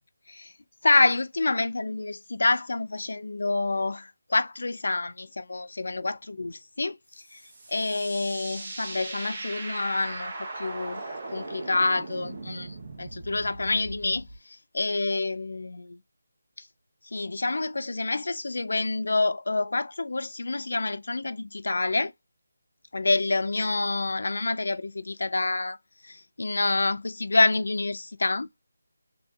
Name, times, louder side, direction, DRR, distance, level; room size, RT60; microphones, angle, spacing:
voice 1, 0.8-7.0 7.3-7.4 7.7-14.3 14.7-15.9 17.1-22.1 22.9-25.8 26.0-28.5, left 2 dB, 70° left, 0.4 m, -27 dB
sound 1, 7.2-14.4, right 2 dB, 30° right, 0.7 m, -39 dB
3.3 x 2.6 x 2.3 m
figure-of-eight pair, 175°, 0 cm